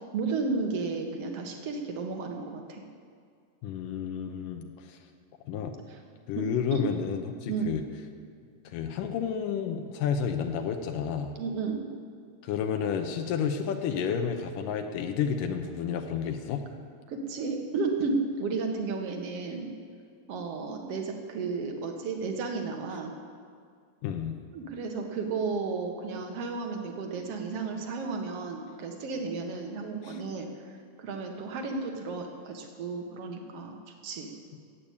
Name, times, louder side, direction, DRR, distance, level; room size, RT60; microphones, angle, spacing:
voice 1, 0.1-2.8 5.9-6.0 6.4-6.5 6.7-6.8 7.5-7.7 11.4-11.9 17.1-19.7 20.3-23.1 24.5-30.5 31.0-34.3, right 4 dB, 55° right, 3 dB, 2.2 m, -33 dB
voice 2, 3.6-5.0 5.5-5.7 6.3-7.8 8.7-11.3 12.4-16.6 24.0-24.3 30.0-30.2, left 7 dB, 85° left, 5 dB, 2.5 m, -31 dB
14.0 x 8.8 x 8.3 m, 2.2 s
omnidirectional pair, 3.8 m